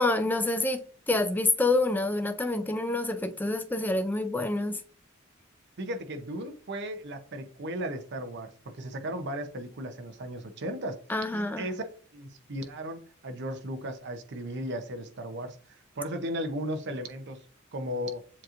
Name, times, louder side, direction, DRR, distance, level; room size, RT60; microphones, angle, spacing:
voice 1, 0.0-4.8 11.1-11.7, left 2 dB, 10° left, 0.4 m, -27 dB
voice 2, 5.8-11.0 11.3-11.8 12.1-17.4 17.7-18.2, equal, 55° right, 0.7 m, -36 dB
7.4 x 2.9 x 2.5 m
head